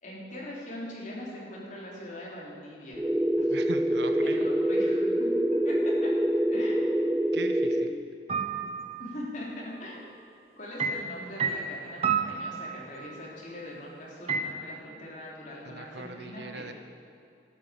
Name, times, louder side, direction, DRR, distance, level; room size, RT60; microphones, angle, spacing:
voice 1, 0.0-3.0 3.4-3.5 4.2-6.1 6.5-6.9 9.0-10.2 10.6-16.7, left 1 dB, 45° left, -4 dB, 3.7 m, -41 dB
sound 1, 3.0-7.9, equal, 10° right, 0.5 m, -25 dB
voice 2, 3.5-4.5 7.3-7.9 15.6-16.7, right 2 dB, 70° right, 7 dB, 1.1 m, -40 dB
sound 2, 8.3-9.1 10.8-13.2 14.3-14.4, right 6 dB, 35° right, 1.0 m, -30 dB
12.5 x 9.8 x 8.5 m, 2.5 s
head